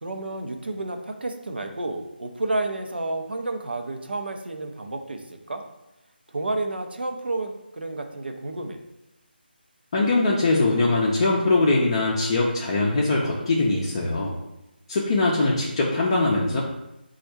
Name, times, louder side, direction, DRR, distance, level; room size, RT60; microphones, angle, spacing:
voice 1, 0.0-5.6 6.3-8.8, right 2 dB, 70° right, 4 dB, 0.7 m, -30 dB
voice 2, 9.9-14.3 14.9-16.6, left 2 dB, 30° left, -3 dB, 0.5 m, -22 dB
4.2 x 2.4 x 4.6 m, 0.93 s
figure-of-eight pair, 155°, 6 cm